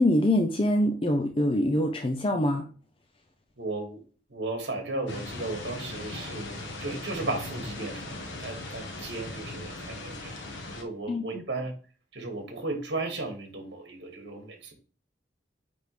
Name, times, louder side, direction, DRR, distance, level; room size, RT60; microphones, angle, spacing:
voice 1, 0.0-2.6 11.1-11.2, left 1 dB, 30° left, 4 dB, 0.6 m, -24 dB
voice 2, 3.6-4.0 4.3-11.7 12.1-14.7, right 2 dB, 75° right, 3 dB, 2.0 m, -35 dB
sound 1, 5.1-10.8, left 2 dB, 90° left, 1.4 m, -39 dB
9.2 x 3.6 x 3.3 m, 0.39 s
head